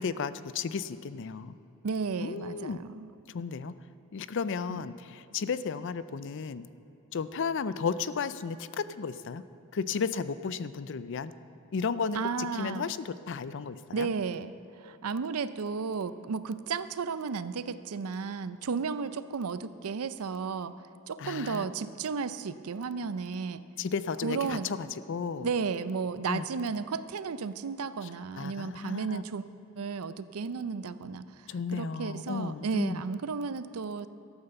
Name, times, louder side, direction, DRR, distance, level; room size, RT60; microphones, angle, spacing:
voice 1, 0.0-1.5 2.2-2.8 3.3-3.7 4.1-6.6 7.1-9.4 9.7-11.3 11.7-14.1 21.2-21.7 23.8-25.5 26.3-26.5 28.4-29.2 31.5-33.0, left 5 dB, 55° left, 15 dB, 0.4 m, -34 dB
voice 2, 1.8-3.1 4.7-4.8 12.1-12.9 13.9-14.5 14.8-20.7 21.1-23.6 24.2-24.7 25.4-29.4 29.8-31.2 31.7-34.1, right 5 dB, 90° right, 14 dB, 0.5 m, -33 dB
13.0 x 8.8 x 6.9 m, 2.9 s
head